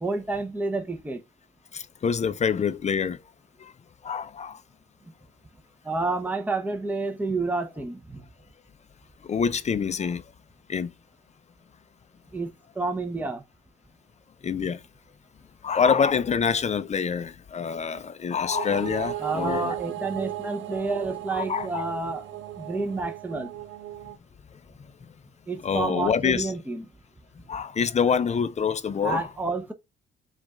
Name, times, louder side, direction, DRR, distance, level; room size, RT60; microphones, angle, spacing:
voice 1, 0.0-1.2 5.8-8.2 12.3-13.4 19.2-22.2 22.6-23.5 25.5-26.8 29.0-29.7, right 3 dB, 10° right, 0.7 m, -29 dB
voice 2, 1.7-3.2 3.6-3.7 4.0-4.6 9.3-10.2 10.7-10.9 14.4-14.8 15.6-19.7 21.3-21.8 25.6-26.5 27.5-29.3, left 6 dB, 35° left, 0.5 m, -26 dB
sound 1, 18.5-24.2, right 13 dB, 80° right, 0.6 m, -36 dB
5.0 x 2.4 x 3.5 m
cardioid pair, 90°, 20 cm